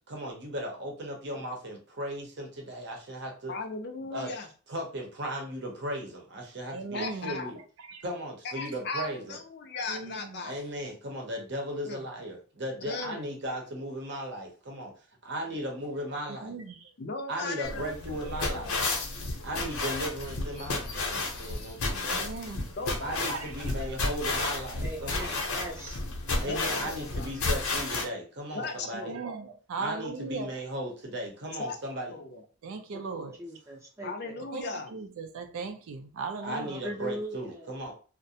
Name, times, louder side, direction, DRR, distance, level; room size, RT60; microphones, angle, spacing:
voice 1, 0.1-3.5 4.1-4.3 4.7-7.6 8.0-9.4 10.4-14.9 15.2-16.6 17.3-18.7 19.4-22.3 23.0-25.4 26.4-29.3 29.8-32.1 36.4-37.9, equal, 55° right, 0.7 m, -36 dB
voice 2, 3.5-4.5 6.9-7.5 8.4-10.6 11.8-12.0 12.8-13.2 17.0-18.8 22.8-23.5 23.8-24.0 26.5-27.3 28.5-29.3 31.6-31.8 32.1-32.4 34.0-34.9, left 3 dB, 50° left, 0.4 m, -38 dB
voice 3, 6.7-7.4 7.8-8.0 9.9-10.4 16.3-16.9 22.0-22.7 23.2-23.5 23.8-23.9 28.9-30.6 32.6-33.4 34.5-36.8, right 4 dB, 80° right, 0.4 m, -38 dB
sound 1, 17.6-28.0, left 2 dB, 90° left, 0.7 m, -32 dB
voice 4, 24.8-26.0 26.3-26.9 32.9-33.1 33.4-34.5 36.7-37.6, equal, 15° right, 0.5 m, -40 dB
2.4 x 2.1 x 2.7 m
head